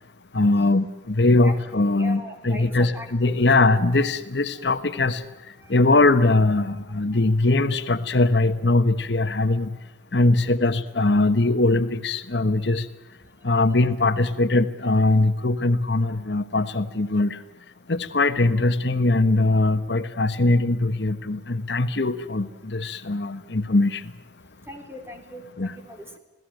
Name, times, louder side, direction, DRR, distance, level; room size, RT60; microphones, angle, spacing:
voice 1, 0.3-5.2 5.7-9.8 10.1-12.9 13.4-17.4 17.9-24.1 25.6-25.8, left 2 dB, 70° left, 10 dB, 1.2 m, -21 dB
voice 2, 1.8-3.7 10.4-10.5 12.7-12.8 24.6-26.2, left 1 dB, 15° right, 4 dB, 3.7 m, -40 dB
26.5 x 17.5 x 9.2 m, 1.1 s
head